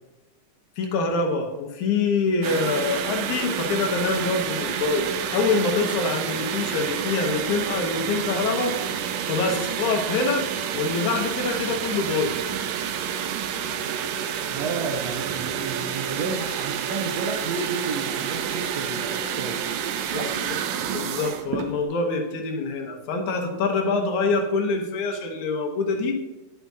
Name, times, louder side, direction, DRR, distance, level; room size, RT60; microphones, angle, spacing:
voice 1, 0.8-8.8 9.3-10.4 10.7-12.4 20.1-20.3 20.9-26.2, left 4 dB, 75° left, 4 dB, 2.4 m, -25 dB
sound 1, 2.4-21.8, right 8 dB, 90° right, 1.4 m, -29 dB
voice 2, 14.5-19.6 20.1-20.3, right 4 dB, 75° right, 3 dB, 1.8 m, -32 dB
10.5 x 9.1 x 2.7 m, 1.1 s
omnidirectional pair, 3.5 m